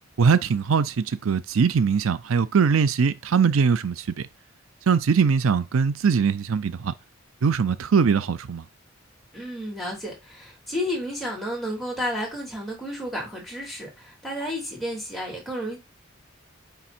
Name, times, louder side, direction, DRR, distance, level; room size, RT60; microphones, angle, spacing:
voice 1, 0.2-4.3 4.9-6.9 7.4-8.6, right 6 dB, 85° right, 0.5 m, -21 dB
voice 2, 9.3-15.8, equal, ahead, 3.3 m, -31 dB
9.2 x 3.5 x 4.3 m
head